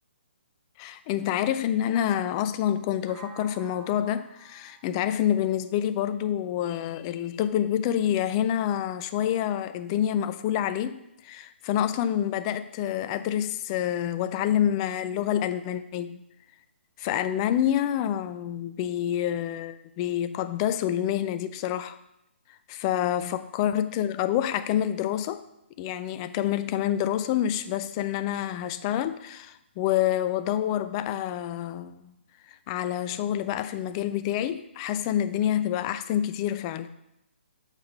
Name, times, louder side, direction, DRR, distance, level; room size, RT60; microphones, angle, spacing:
voice 1, 0.8-16.2 17.0-22.0 22.7-25.4 25.8-32.1 32.7-36.9, left 11 dB, 25° left, 0.3 m, -27 dB
sound 1, 3.1-7.0, right 6 dB, 25° right, 0.8 m, -52 dB
7.2 x 3.7 x 5.4 m
figure-of-eight pair, 135°, 7 cm